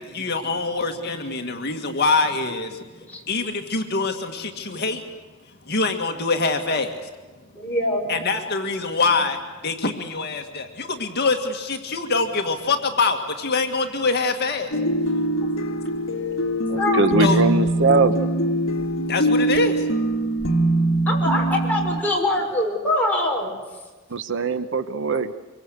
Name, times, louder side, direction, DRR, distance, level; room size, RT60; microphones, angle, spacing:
voice 1, 0.0-2.9 3.3-5.0 5.7-6.9 8.1-14.8 17.2-17.4 19.1-19.9, left 3 dB, 55° left, 2.0 m, -24 dB
voice 2, 7.6-8.2 8.9-9.0 16.8-17.0 21.1-23.5, left 1 dB, 10° left, 6.0 m, -23 dB
sound 1, 14.7-22.0, right 1 dB, 70° left, 1.9 m, -22 dB
voice 3, 16.7-18.2 24.1-25.3, right 3 dB, 65° right, 1.1 m, -21 dB
25.5 x 23.5 x 8.1 m
head